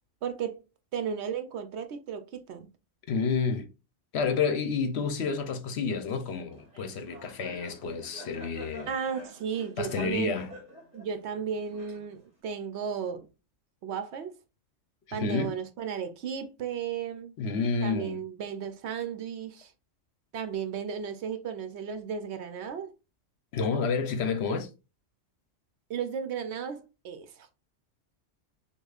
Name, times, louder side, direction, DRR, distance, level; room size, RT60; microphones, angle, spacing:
voice 1, 0.2-0.6 0.9-2.7 8.9-10.4 10.9-13.3 13.8-14.3 15.1-17.3 17.8-19.7 20.3-22.9 25.9-27.5, right 7 dB, 70° right, 0.8 m, -34 dB
voice 2, 3.1-3.7 4.1-8.9 9.8-10.5 15.1-15.5 17.4-18.2 23.5-24.7, left 5 dB, 65° left, 0.9 m, -29 dB
Laughter, 6.5-12.4, equal, 35° right, 1.4 m, -48 dB
6.4 x 2.4 x 2.3 m
omnidirectional pair, 1.3 m